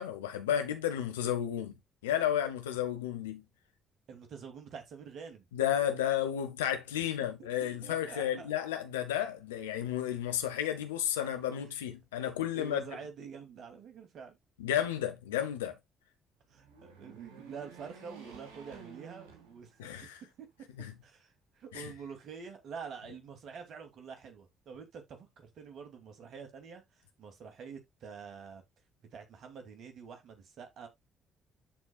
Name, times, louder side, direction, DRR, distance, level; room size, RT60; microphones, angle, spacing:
voice 1, 0.0-1.7 2.0-3.4 5.5-12.8 14.6-15.8 19.8-20.2 20.8-20.9 21.7-21.9, left 10 dB, 85° left, 1.1 m, -32 dB
voice 2, 4.1-5.5 7.0-7.1 7.6-8.5 12.5-14.4 16.5-19.8 20.4-20.5 21.0-28.6 29.1-30.9, right 6 dB, 60° right, 2.4 m, -47 dB
sound 1, 16.5-20.1 20.6-20.7 21.7-22.5, right 5 dB, 85° right, 2.1 m, -53 dB
13.0 x 4.4 x 2.3 m
hypercardioid pair, 50°, 0 cm